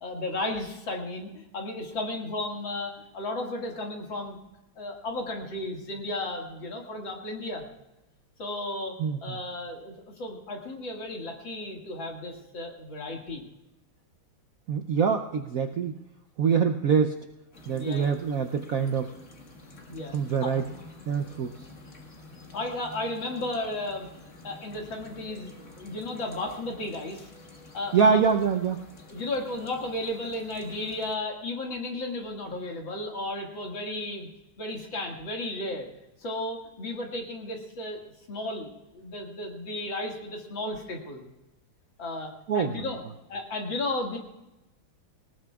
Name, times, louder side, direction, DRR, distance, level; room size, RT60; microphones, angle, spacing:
voice 1, 0.0-4.4 4.8-7.7 8.4-8.9 9.2-13.4 17.7-18.2 19.9-20.1 20.4-20.6 22.5-24.1 24.4-27.3 27.7-28.2 29.1-34.3 34.6-35.9 36.2-38.0 38.3-41.3 42.0-43.0 43.3-44.2, left 2 dB, 65° left, 0 dB, 2.8 m, -34 dB
voice 2, 9.0-9.4 14.7-15.9 16.4-17.2 17.7-19.1 20.1-20.6 21.1-21.6 27.9-28.9 42.5-42.9, right 6 dB, 75° right, 5 dB, 0.8 m, -25 dB
sound 1, 17.5-31.1, left 3 dB, 40° left, 1.9 m, -49 dB
19.5 x 19.0 x 2.4 m, 0.95 s
omnidirectional pair, 2.3 m